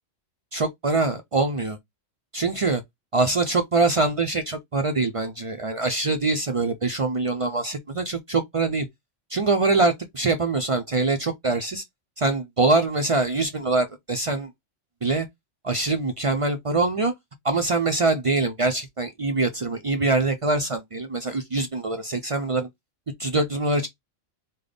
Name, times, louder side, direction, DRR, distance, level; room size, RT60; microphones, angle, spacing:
voice 1, 0.5-1.8 2.3-2.8 3.1-8.9 9.3-11.8 12.2-14.5 15.0-15.3 15.6-17.1 17.4-22.7 23.2-23.9, right 3 dB, 50° right, 0.4 m, -24 dB
3.4 x 2.2 x 3.8 m
omnidirectional pair, 1.3 m